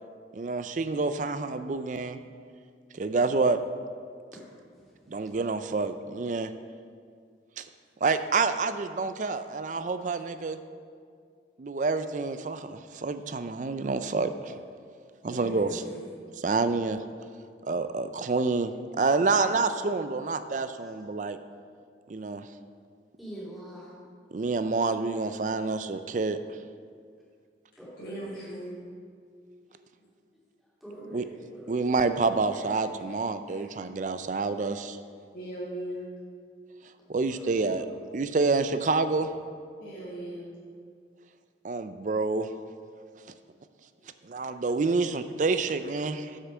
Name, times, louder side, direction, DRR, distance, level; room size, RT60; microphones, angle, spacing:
voice 1, 0.3-2.2 2.9-3.6 5.1-6.5 7.6-7.7 8.0-10.6 11.6-14.5 15.2-15.8 16.4-17.0 17.6-21.4 22.1-22.4 24.3-26.4 31.1-31.2 31.7-35.0 37.1-37.9 38.1-39.3 41.6-42.5 44.2-46.4, right 3 dB, 40° right, 10 dB, 0.4 m, -28 dB
voice 2, 15.2-15.8 28.0-28.7 35.3-36.0 39.8-40.4, right 1 dB, 50° left, -9 dB, 2.1 m, -38 dB
voice 3, 20.6-20.9 23.2-23.9 27.8-28.5 29.7-29.8 30.8-31.9 37.3-37.5, right 1 dB, ahead, -9 dB, 2.7 m, -45 dB
7.6 x 6.6 x 6.1 m, 2.1 s
head